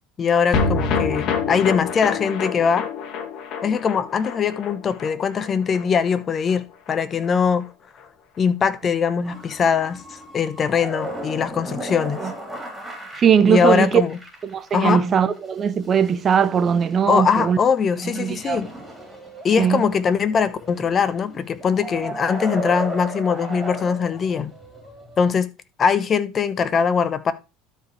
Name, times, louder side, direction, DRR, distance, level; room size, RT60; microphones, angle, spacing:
voice 1, 0.2-2.9 3.6-7.7 8.4-12.3 13.4-14.2 14.7-15.0 17.1-18.7 19.4-24.5 25.2-25.5 25.8-27.3, left 6 dB, 35° left, 0.9 m, -21 dB
sound 1, 0.5-7.0 7.2-7.3 7.6-7.7, left 5 dB, 55° left, 1.7 m, -27 dB
sound 2, 9.2-25.3, right 1 dB, 10° right, 3.4 m, -35 dB
voice 2, 13.2-14.0 14.4-17.6 18.2-18.6 19.6-19.8, right 7 dB, 35° right, 0.8 m, -19 dB
12.5 x 4.8 x 3.3 m
supercardioid pair, 100°, 0 cm